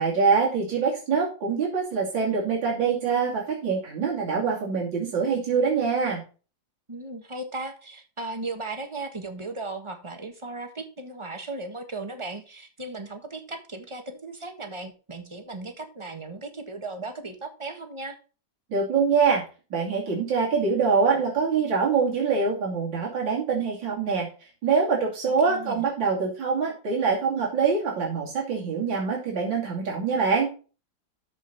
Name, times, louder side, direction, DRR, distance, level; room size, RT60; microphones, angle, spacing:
voice 1, 0.0-6.2 18.7-19.4 19.7-24.3 24.6-30.5, right 5 dB, 90° right, -3 dB, 3.5 m, -24 dB
voice 2, 6.9-18.2 25.4-25.8, right 2 dB, 20° right, 6 dB, 1.3 m, -36 dB
13.5 x 5.4 x 4.1 m, 0.34 s
omnidirectional pair, 2.0 m